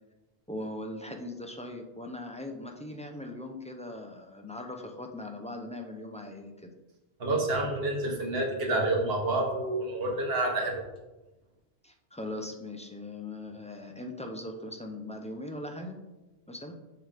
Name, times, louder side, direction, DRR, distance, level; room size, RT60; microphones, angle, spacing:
voice 1, 0.5-6.7 11.8-16.0 16.5-16.7, left 1 dB, 10° left, 3 dB, 0.4 m, -40 dB
voice 2, 7.2-10.8, right 2 dB, 60° right, 1 dB, 1.4 m, -28 dB
6.8 x 6.3 x 3.4 m, 1.1 s
omnidirectional pair, 1.1 m